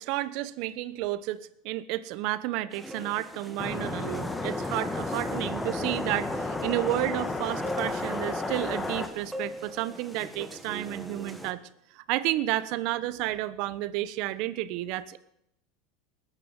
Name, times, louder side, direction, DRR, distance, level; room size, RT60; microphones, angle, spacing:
voice 1, 0.0-11.6 11.9-15.2, right 15 dB, 60° right, 15 dB, 1.1 m, -31 dB
sound 1, 2.7-11.5, equal, 5° right, 1.8 m, -42 dB
sound 2, 3.6-9.1, left 2 dB, 10° left, 1.6 m, -32 dB
19.5 x 10.0 x 7.3 m, 0.79 s
supercardioid pair, 130°, 0 cm